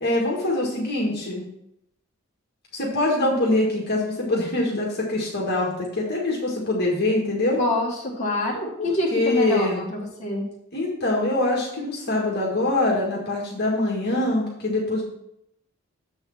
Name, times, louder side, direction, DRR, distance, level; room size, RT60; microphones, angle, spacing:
voice 1, 0.0-1.4 2.7-7.6 8.8-9.8 10.7-15.0, left 2 dB, 45° left, -3 dB, 1.8 m, -24 dB
voice 2, 7.6-10.4, left 1 dB, 30° left, -5 dB, 1.9 m, -26 dB
7.5 x 4.8 x 5.9 m, 0.78 s
head